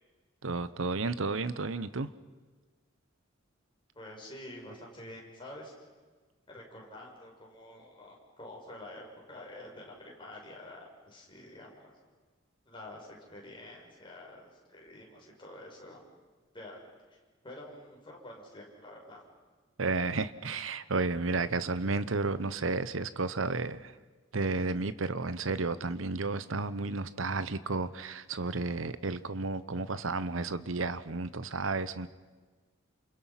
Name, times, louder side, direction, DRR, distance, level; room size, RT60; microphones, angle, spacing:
voice 1, 0.4-2.1 19.8-23.9 24.3-32.1, right 3 dB, 80° right, 14 dB, 1.0 m, -32 dB
voice 2, 3.9-5.7 6.5-11.9 12.7-16.0 16.5-16.8 17.1-17.2 17.4-19.2, left 1 dB, 25° left, -2 dB, 6.3 m, -48 dB
29.5 x 27.5 x 5.8 m, 1.4 s
head